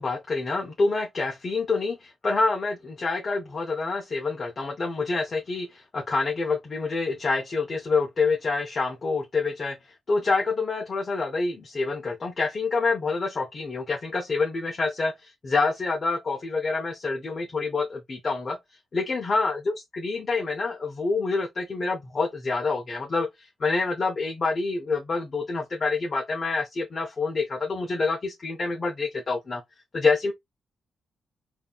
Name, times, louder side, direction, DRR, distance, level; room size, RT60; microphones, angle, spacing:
voice 1, 0.0-9.8 10.1-18.6 18.9-29.6 29.9-30.3, left 3 dB, 35° left, 0.7 m, -27 dB
3.8 x 2.7 x 2.3 m
cardioid pair, 125°, 0 cm